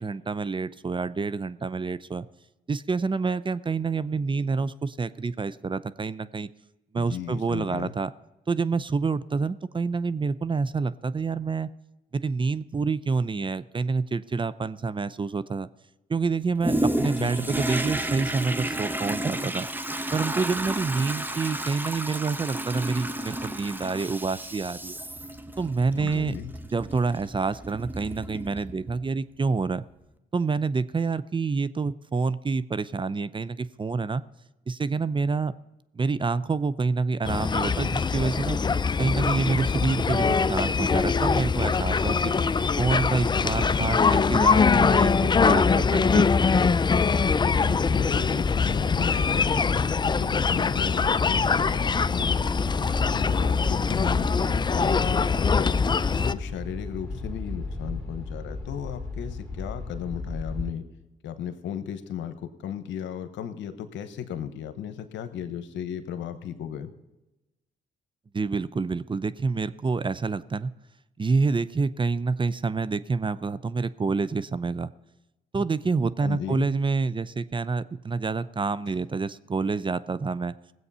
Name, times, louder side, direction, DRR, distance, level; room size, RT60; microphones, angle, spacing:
voice 1, 0.0-2.3 2.7-6.5 6.9-8.1 8.5-11.7 12.1-15.7 16.1-19.7 20.1-25.0 25.6-26.4 26.7-29.8 30.3-34.2 34.7-35.5 35.9-38.6 39.0-42.3 42.8-46.2 68.3-70.7 71.2-74.9 75.5-80.5, right 4 dB, 25° right, 16 dB, 0.5 m, -27 dB
voice 2, 6.9-7.9 17.2-17.6 25.9-26.5 43.3-43.5 43.8-44.3 47.6-52.4 53.1-55.8 56.3-60.9 61.2-66.9 76.2-76.7 78.9-79.0, left 9 dB, 75° left, 10 dB, 1.0 m, -36 dB
Toilet flush, 16.6-29.0 29.6-29.7, right 1 dB, 10° right, 0.9 m, -32 dB
sound 1, 37.2-56.3, left 5 dB, 25° left, 0.4 m, -23 dB
sound 2, 47.1-60.7, left 3 dB, 5° left, 3.0 m, -36 dB
18.0 x 7.9 x 5.5 m, 0.99 s
supercardioid pair, 60°, 19 cm